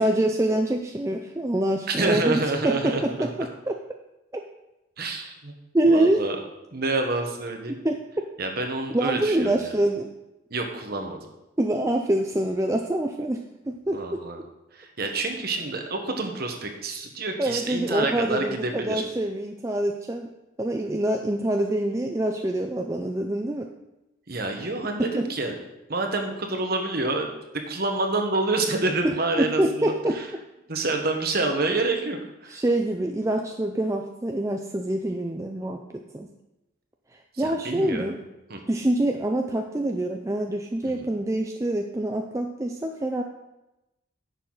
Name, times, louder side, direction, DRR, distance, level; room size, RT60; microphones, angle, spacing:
voice 1, 0.0-2.9 3.2-3.3 3.7-3.8 5.7-6.2 7.8-8.0 8.9-10.1 11.6-14.2 17.4-20.3 20.6-23.7 25.0-25.3 29.4-30.2 32.5-36.3 37.1-38.2 38.7-43.2, right 1 dB, 15° right, 3 dB, 0.4 m, -25 dB
voice 2, 1.9-3.3 5.0-5.5 5.9-6.4 6.7-7.8 8.4-9.7 10.5-11.2 13.9-14.4 14.7-19.0 24.3-25.6 25.9-27.3 27.7-30.3 30.7-32.6 37.3-38.2 38.5-38.6 40.8-41.1, right 2 dB, 50° right, 3 dB, 1.2 m, -28 dB
10.5 x 6.8 x 4.0 m, 0.95 s
head